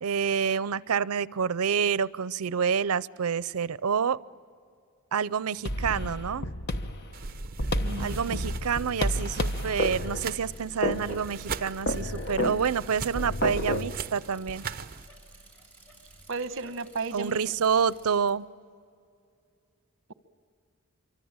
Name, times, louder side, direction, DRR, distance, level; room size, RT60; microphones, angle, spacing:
voice 1, 0.0-4.2 5.1-6.5 8.0-14.6 17.1-18.5, right 6 dB, 85° right, 19 dB, 0.6 m, -28 dB
sound 1, 5.7-13.9, left 1 dB, 50° left, 1.1 m, -31 dB
sound 2, 7.1-15.1, right 4 dB, 40° right, 0.8 m, -40 dB
voice 2, 7.8-8.5 16.3-17.4, right 3 dB, 60° right, 11 dB, 1.1 m, -34 dB
Bicycle, 8.2-18.3, right 2 dB, 5° left, 6.5 m, -54 dB
26.0 x 24.5 x 8.9 m, 2.3 s
head